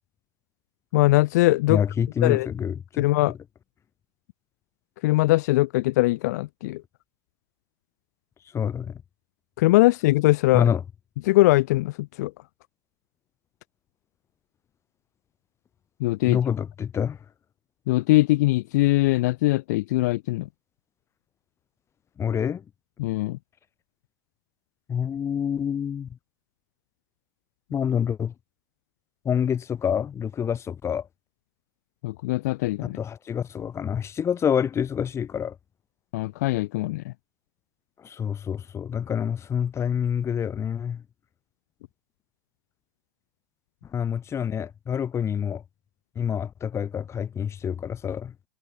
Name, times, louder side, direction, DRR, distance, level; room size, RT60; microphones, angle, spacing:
voice 1, 0.9-1.8 2.2-2.5 3.0-3.3 5.0-6.8 9.6-10.7 11.2-12.3 16.0-16.4 17.9-20.5 23.0-23.4 32.0-33.0 36.1-37.1, left 19 dB, 65° left, 1.6 m, -21 dB
voice 2, 1.7-3.4 8.5-9.0 10.5-10.8 16.3-17.2 22.2-22.6 24.9-26.1 27.7-28.3 29.2-31.1 32.9-35.6 38.0-41.0 43.9-45.6 46.1-48.3, left 8 dB, 25° left, 3.3 m, -27 dB
hypercardioid pair, 90°, 10 cm